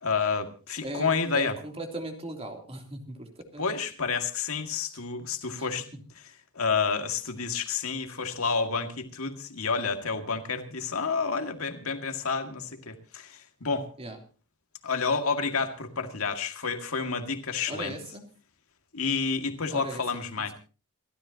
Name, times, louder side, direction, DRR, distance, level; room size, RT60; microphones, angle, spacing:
voice 1, 0.0-1.5 3.6-5.9 6.5-13.9 14.8-18.0 18.9-20.5, left 5 dB, 70° left, 6 dB, 2.1 m, -29 dB
voice 2, 0.8-3.7 5.6-5.7 14.0-14.2 17.7-18.2 19.7-20.0, right 1 dB, 25° right, 3 dB, 3.1 m, -38 dB
28.0 x 13.0 x 2.9 m, 0.36 s
head